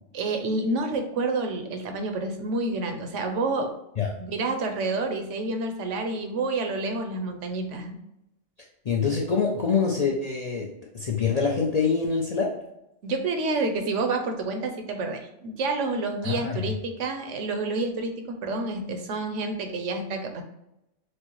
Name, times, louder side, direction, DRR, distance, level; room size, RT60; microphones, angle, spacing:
voice 1, 0.1-3.7 4.2-8.0 13.0-20.4, right 3 dB, 85° right, 5 dB, 1.0 m, -29 dB
voice 2, 8.9-10.7 10.9-12.5 16.2-16.7, left 5 dB, 55° left, -1 dB, 0.4 m, -25 dB
6.1 x 2.1 x 3.0 m, 0.84 s
omnidirectional pair, 1.2 m